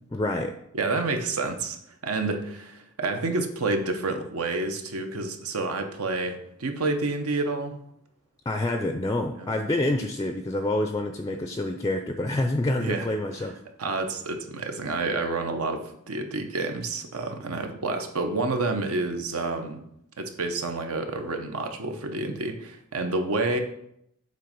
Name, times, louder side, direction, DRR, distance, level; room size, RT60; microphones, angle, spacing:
voice 1, 0.1-0.5 8.5-13.6, left 1 dB, 15° left, 6 dB, 0.4 m, -27 dB
voice 2, 0.7-1.8 2.0-7.8 9.4-9.6 12.8-13.1 13.8-19.8 20.2-23.6, right 3 dB, 85° right, 5 dB, 0.9 m, -29 dB
7.8 x 3.2 x 5.1 m, 0.74 s
head